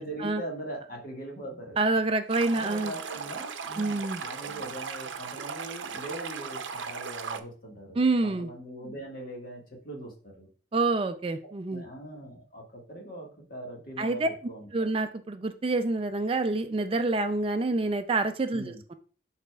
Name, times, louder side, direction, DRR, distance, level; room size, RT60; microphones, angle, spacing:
voice 1, 0.0-1.8 2.5-10.5 11.7-14.9 18.5-18.8, right 1 dB, 50° left, 0 dB, 1.7 m, -41 dB
voice 2, 1.8-2.9 3.8-4.2 8.0-8.5 10.7-11.8 14.0-14.3 14.7-18.9, right 3 dB, 30° right, 9 dB, 0.3 m, -27 dB
Stream, 2.3-7.4, right 6 dB, 85° right, 0.6 m, -37 dB
11.0 x 4.1 x 2.3 m, 0.40 s
head